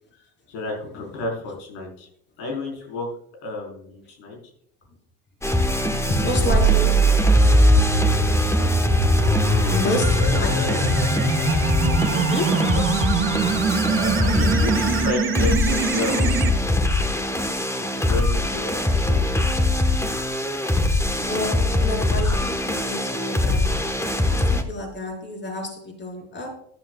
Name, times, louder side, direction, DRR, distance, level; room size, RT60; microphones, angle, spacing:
voice 1, 0.1-2.1 2.4-3.1 3.4-4.4 8.6-9.8 10.2-10.7 11.8-13.0 13.9-16.3 16.8-17.3 18.0-19.4, left 3 dB, 85° left, 0 dB, 4.2 m, -33 dB
sound 1, 5.4-24.6, left 1 dB, 10° left, 1.2 m, -23 dB
voice 2, 6.1-7.1 9.7-10.9 12.3-12.6 21.2-26.5, left 1 dB, 35° left, 1 dB, 4.5 m, -30 dB
sound 2, 6.5-16.5, right 3 dB, 40° right, 1.8 m, -21 dB
13.5 x 12.0 x 2.3 m, 0.69 s
supercardioid pair, 100°, 33 cm